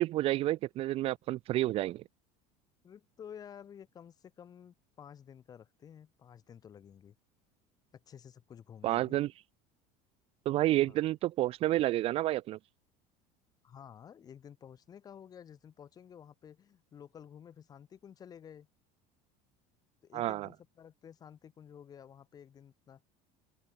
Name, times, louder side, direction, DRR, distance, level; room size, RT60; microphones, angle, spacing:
voice 1, 0.0-2.0 8.8-9.3 10.4-12.6 20.1-20.5, right 15 dB, 35° right, 1.0 m, -29 dB
voice 2, 2.8-7.1 7.9-9.2 10.9-11.0 13.6-18.7 20.0-23.0, left 8 dB, 25° left, 6.2 m, -52 dB
open air
cardioid pair, 180°, 16 cm